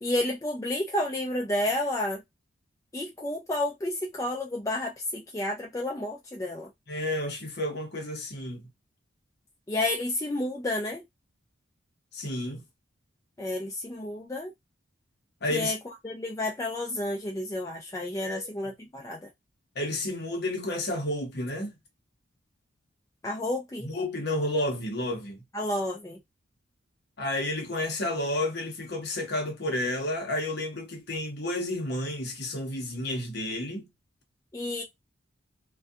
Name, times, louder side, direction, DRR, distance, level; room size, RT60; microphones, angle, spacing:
voice 1, 0.0-2.2 2.9-6.7 9.7-11.0 13.4-14.5 15.5-15.8 16.0-19.3 23.2-23.9 25.5-26.2 34.5-34.8, left 1 dB, 15° left, 0.4 m, -31 dB
voice 2, 6.9-8.7 12.1-12.6 15.4-15.7 18.2-18.5 19.8-21.7 23.8-25.4 27.2-33.9, left 1 dB, 50° left, 0.8 m, -31 dB
2.6 x 2.3 x 2.3 m
head